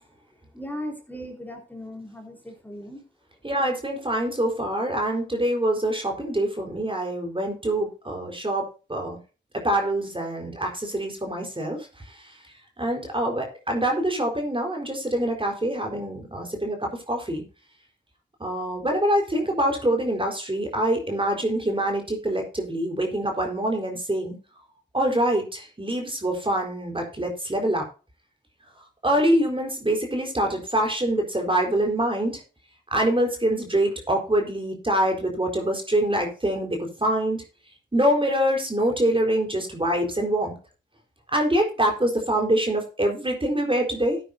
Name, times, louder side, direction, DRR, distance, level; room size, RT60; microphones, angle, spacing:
voice 1, 0.5-3.0, equal, 10° left, 2 dB, 4.3 m, -37 dB
voice 2, 3.4-8.6 8.9-9.2 9.6-12.4 12.8-17.4 18.4-24.4 24.9-27.9 29.0-32.4 32.9-37.4 37.9-40.5 41.3-44.2, right 1 dB, 25° right, 2 dB, 4.4 m, -25 dB
14.5 x 9.2 x 2.8 m, 0.34 s
cardioid pair, 50°, 19 cm